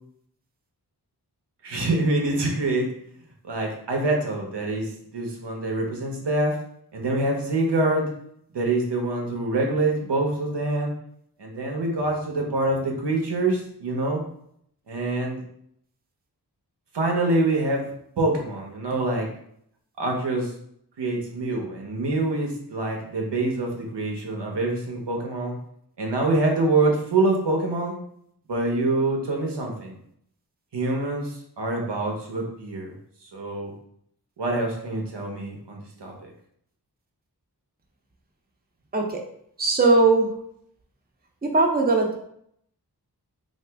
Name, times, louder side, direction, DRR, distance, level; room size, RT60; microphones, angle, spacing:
voice 1, 1.6-2.9 3.4-6.6 6.9-8.1 8.5-10.9 11.4-14.2 14.9-15.4 16.9-17.9 18.2-19.3 20.0-20.5 21.0-25.6 26.0-27.9 28.5-29.9 30.7-32.9 33.3-33.7 34.4-36.3, right 2 dB, 90° right, 0 dB, 0.8 m, -25 dB
voice 2, 39.6-40.3 41.4-42.2, right 3 dB, 25° right, 1 dB, 0.6 m, -19 dB
2.9 x 2.6 x 3.4 m, 0.69 s
wide cardioid pair, 55°, 40 cm